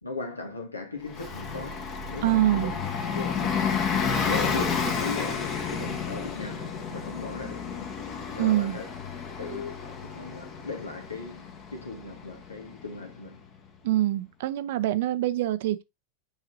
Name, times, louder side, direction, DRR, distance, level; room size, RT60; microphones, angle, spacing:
voice 1, 0.0-2.7 3.1-3.8 4.2-8.0 8.3-8.9 9.4-13.4, left 3 dB, 80° left, 1.7 m, -38 dB
Bus, 1.1-13.4, left 6 dB, 35° left, 1.3 m, -31 dB
voice 2, 2.2-2.7 8.4-8.8 13.8-15.8, right 14 dB, 50° right, 0.5 m, -25 dB
7.1 x 5.0 x 2.6 m
figure-of-eight pair, 90°, 0 cm